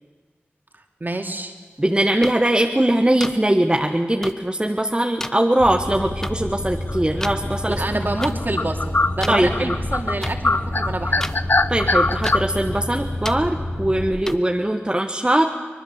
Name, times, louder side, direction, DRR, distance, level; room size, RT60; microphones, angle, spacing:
voice 1, 0.7-1.5 7.7-8.8 9.1-11.2, right 2 dB, 45° right, 3 dB, 2.9 m, -27 dB
voice 2, 1.8-7.8 9.3-9.5 11.7-15.5, right 1 dB, 20° right, 3 dB, 1.3 m, -21 dB
sound 1, 2.2-2.3 3.2-3.3 4.2-4.3 5.2-5.3 6.2-6.3 7.2-7.3 8.2-8.3 9.2-9.3 10.2-10.3 11.2-11.4 12.2-12.3 13.2-13.3 14.2-14.3, left 1 dB, 10° left, 1.0 m, -29 dB
sound 2, 5.6-14.1, left 1 dB, 75° left, 6.1 m, -29 dB
sound 3, 6.9-7.3 7.8-7.9 8.2-10.2 10.4-12.4, left 3 dB, 50° left, 0.8 m, -21 dB
24.5 x 20.0 x 7.4 m, 1.5 s
cardioid pair, 40°, 4 cm